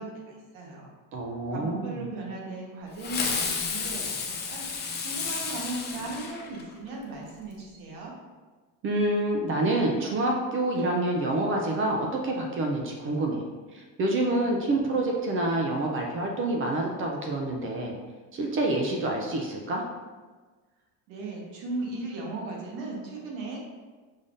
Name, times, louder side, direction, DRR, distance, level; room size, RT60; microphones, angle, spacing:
voice 1, 0.0-0.9 1.5-4.7 5.0-8.1 21.1-23.6, right 2 dB, 80° right, -1 dB, 1.3 m, -37 dB
voice 2, 1.1-1.9 8.8-13.4 13.7-18.0 18.3-19.8, right 2 dB, 30° right, 1 dB, 0.4 m, -27 dB
Fireworks, 3.0-6.9, left 5 dB, 25° left, 0.5 m, -31 dB
5.4 x 3.4 x 2.6 m, 1.3 s
cardioid pair, 155°, 42 cm